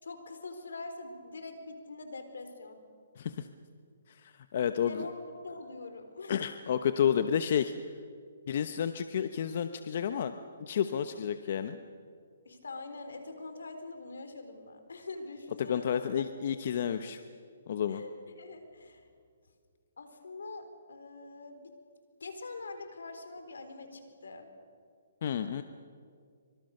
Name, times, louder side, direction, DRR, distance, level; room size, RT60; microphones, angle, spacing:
voice 1, 0.0-2.8 4.9-5.1 5.4-6.4 12.4-16.1 17.9-19.1 20.0-21.7 22.2-24.5, left 3 dB, 85° left, 7 dB, 4.2 m, -44 dB
voice 2, 3.2-3.5 4.2-4.9 6.3-7.7 8.5-10.3 10.6-11.8 15.6-17.2 17.7-18.0 25.2-25.6, left 8 dB, 50° left, 9 dB, 1.0 m, -30 dB
25.0 x 24.5 x 6.7 m, 2.1 s
hypercardioid pair, 155°, 0 cm